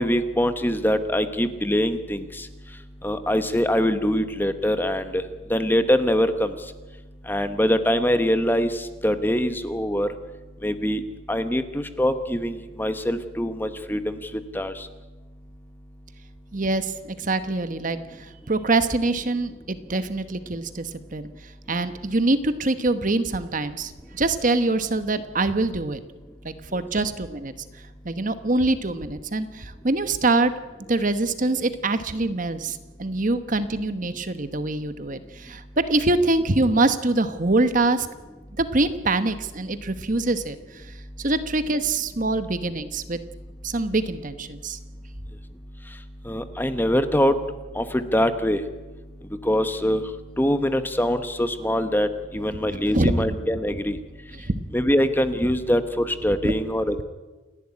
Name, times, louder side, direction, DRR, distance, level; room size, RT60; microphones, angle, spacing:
voice 1, 0.0-2.5 3.0-5.2 5.5-6.5 7.3-10.1 10.6-11.0 11.3-14.2 14.5-14.9 46.3-47.4 47.7-48.6 49.4-50.0 50.4-52.1 52.3-54.0 54.7-57.0, equal, 10° left, 10 dB, 1.0 m, -23 dB
voice 2, 16.5-21.3 21.7-26.0 26.4-27.5 28.0-30.5 30.9-38.1 38.6-43.2 43.6-44.8 52.7-53.2 54.5-54.6 56.4-56.5, right 2 dB, 40° right, 11 dB, 1.1 m, -24 dB
28.5 x 11.5 x 9.8 m, 1.2 s
head